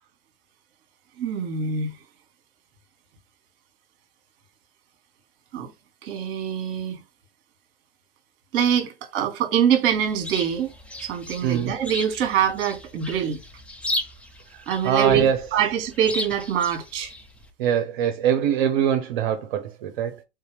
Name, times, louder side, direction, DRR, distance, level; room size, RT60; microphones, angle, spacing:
voice 1, 1.2-1.9 5.5-5.7 6.0-7.0 8.5-10.7 11.0-13.4 14.7-17.1, right 8 dB, 40° right, 1.3 m, -24 dB
Chirp tweet, 9.9-17.5, left 1 dB, 5° left, 0.5 m, -36 dB
voice 2, 11.4-11.7 14.5-15.4 17.6-20.2, right 9 dB, 55° right, 0.6 m, -23 dB
3.6 x 2.7 x 3.2 m
figure-of-eight pair, 100°, 30 cm